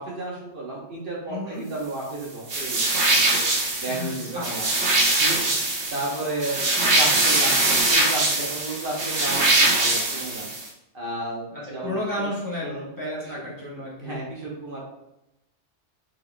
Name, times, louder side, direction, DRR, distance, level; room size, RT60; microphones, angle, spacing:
voice 1, 0.0-3.4 3.8-4.7 5.2-5.5 5.9-6.6 6.9-10.5 10.9-12.3 12.6-12.8 13.2-13.5 14.0-14.8, right 2 dB, 50° right, -4 dB, 1.2 m, -33 dB
voice 2, 1.3-1.7 3.9-4.5 6.8-7.2 11.5-14.2, left 1 dB, 15° left, -8 dB, 1.3 m, -33 dB
sound 1, 2.5-10.7, right 2 dB, 75° right, 1.3 m, -22 dB
4.5 x 4.5 x 2.2 m, 0.91 s
omnidirectional pair, 1.2 m